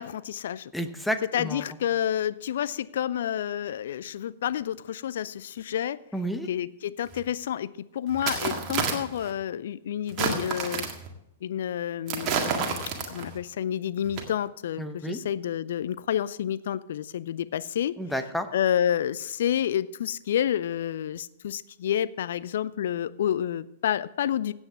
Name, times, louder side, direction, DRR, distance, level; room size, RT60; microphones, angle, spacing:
voice 1, 0.0-0.7 1.2-6.0 6.4-10.9 11.4-17.9 18.5-24.5, left 10 dB, 55° left, 17 dB, 0.4 m, -29 dB
voice 2, 0.7-1.6 6.1-6.5 14.8-15.2 18.0-18.5, equal, ahead, 8 dB, 0.9 m, -30 dB
sound 1, 7.1-7.2 8.1-9.3 10.1-11.1 12.1-13.4 14.0-14.2, right 5 dB, 30° right, 1.8 m, -30 dB
15.5 x 8.1 x 3.4 m, 0.80 s
figure-of-eight pair, 100°, 0 cm